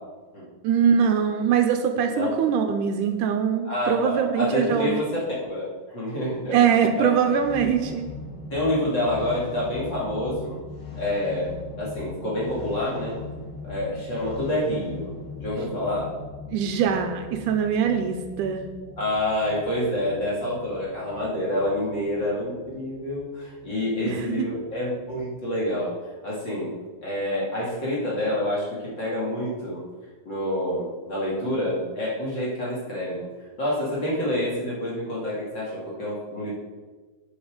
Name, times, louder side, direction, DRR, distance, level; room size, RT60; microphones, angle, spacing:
voice 1, 0.6-5.0 6.5-8.1 16.5-18.6 24.1-24.5, right 7 dB, 80° right, 6 dB, 2.1 m, -22 dB
voice 2, 3.6-5.2 5.5-6.6 7.0-7.1 8.5-10.6 10.9-13.2 13.6-15.1 15.4-16.2 19.0-26.0 26.2-26.7 27.0-29.8 30.2-33.3 33.6-36.5, left 1 dB, 35° left, -6 dB, 2.9 m, -27 dB
sound 1, 6.3-25.5, left 3 dB, 70° left, 3.4 m, -40 dB
8.9 x 7.1 x 5.1 m, 1.4 s
omnidirectional pair, 3.8 m